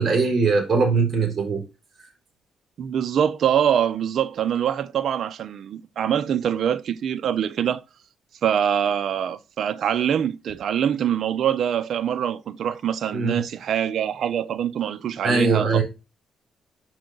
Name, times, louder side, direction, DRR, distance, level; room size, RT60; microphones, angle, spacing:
voice 1, 0.0-1.6 13.1-13.4 15.2-15.8, right 4 dB, 35° right, 3.5 m, -21 dB
voice 2, 2.8-7.8 8.4-15.8, right 9 dB, 65° right, 0.6 m, -24 dB
6.2 x 6.0 x 3.8 m
cardioid pair, 105°, 0 cm